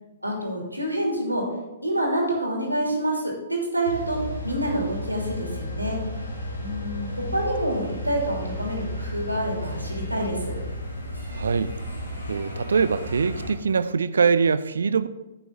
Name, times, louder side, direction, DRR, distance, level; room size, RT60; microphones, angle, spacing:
voice 1, 0.2-1.4 1.8-4.2 4.4-6.0 6.6-10.5, right 1 dB, 90° right, -1 dB, 3.0 m, -27 dB
sound 1, 3.8-13.5, equal, 85° left, 3.5 m, -33 dB
voice 2, 11.3-11.7 12.3-15.1, right 5 dB, 65° right, 14 dB, 0.5 m, -23 dB
11.5 x 8.4 x 3.9 m, 1.1 s
figure-of-eight pair, 115°, 0 cm